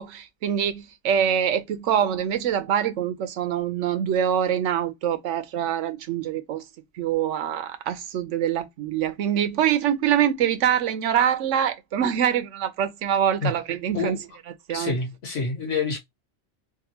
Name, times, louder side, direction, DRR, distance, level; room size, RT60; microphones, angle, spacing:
voice 1, 0.0-6.6 7.0-14.2 14.7-14.9, right 9 dB, 85° right, 1.0 m, -24 dB
voice 2, 14.7-16.0, left 4 dB, 80° left, 1.5 m, -27 dB
3.6 x 2.3 x 2.8 m
omnidirectional pair, 1.2 m